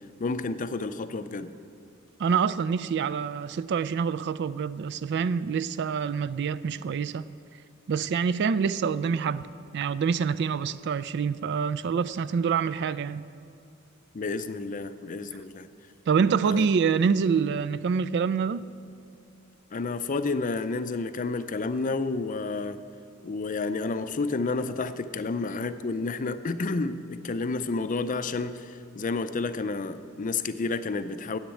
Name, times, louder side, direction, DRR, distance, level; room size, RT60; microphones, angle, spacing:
voice 1, 0.2-1.5 14.1-15.7 16.5-16.7 19.7-22.8 23.2-31.4, left 3 dB, 40° left, 12 dB, 0.5 m, -30 dB
voice 2, 2.2-7.3 7.9-9.5 9.7-13.3 16.1-18.6, right 6 dB, 55° right, 15 dB, 0.3 m, -26 dB
10.0 x 8.1 x 9.0 m, 2.4 s
head